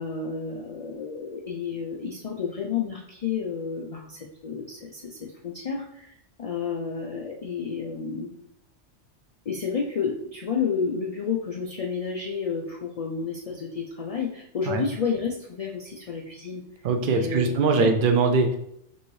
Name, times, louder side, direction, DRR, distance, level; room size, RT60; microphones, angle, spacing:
voice 1, 0.0-8.3 9.5-16.6 17.0-17.9, left 6 dB, 60° left, 1 dB, 0.4 m, -31 dB
voice 2, 16.8-18.6, right 4 dB, 55° right, 6 dB, 0.7 m, -22 dB
5.4 x 2.7 x 3.1 m, 0.76 s
omnidirectional pair, 1.2 m